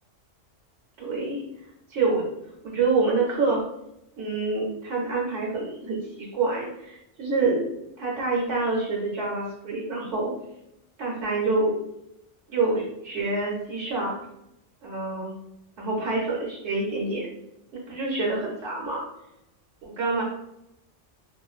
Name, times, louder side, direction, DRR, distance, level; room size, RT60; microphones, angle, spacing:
voice 1, 1.0-1.4 1.9-2.3 2.6-3.6 4.2-7.6 8.0-10.3 11.0-11.7 12.5-14.2 14.8-15.3 15.8-17.3 17.7-19.0 19.8-20.2, right 3 dB, 75° right, -4 dB, 1.0 m, -27 dB
2.5 x 2.1 x 2.3 m, 0.83 s
omnidirectional pair, 1.2 m